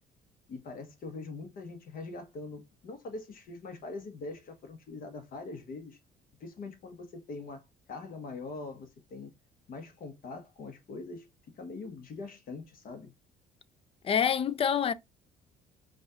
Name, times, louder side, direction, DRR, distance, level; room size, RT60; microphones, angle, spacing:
voice 1, 0.5-6.0 6.4-7.6 7.9-9.3 9.7-11.3 11.6-13.1, left 3 dB, 55° left, 1.2 m, -43 dB
voice 2, 14.0-14.9, left 8 dB, 35° left, 0.4 m, -26 dB
5.1 x 2.5 x 3.7 m
cardioid pair, 110°, 17 cm